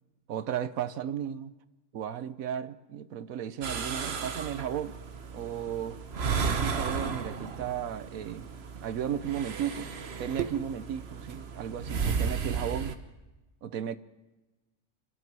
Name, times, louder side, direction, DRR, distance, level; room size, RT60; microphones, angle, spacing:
voice 1, 0.3-1.5 1.9-5.0 5.3-6.0 6.4-8.5 8.8-9.9 10.2-12.9 13.6-14.0, right 9 dB, 85° right, 1.3 m, -35 dB
sound 1, 3.6-12.9, right 5 dB, 50° right, 1.3 m, -34 dB
27.0 x 13.0 x 7.6 m
omnidirectional pair, 1.4 m